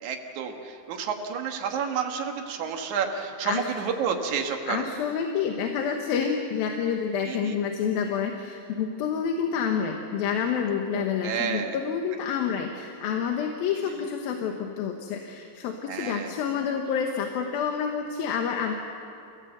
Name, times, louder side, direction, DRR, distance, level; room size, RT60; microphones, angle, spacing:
voice 1, 0.0-4.9 7.3-7.5 10.9-11.8 13.9-14.0 15.9-16.3, right 6 dB, 60° right, 3 dB, 2.8 m, -30 dB
voice 2, 4.6-18.8, left 7 dB, 85° left, 3 dB, 3.0 m, -28 dB
29.0 x 16.0 x 8.0 m, 2.7 s
omnidirectional pair, 4.1 m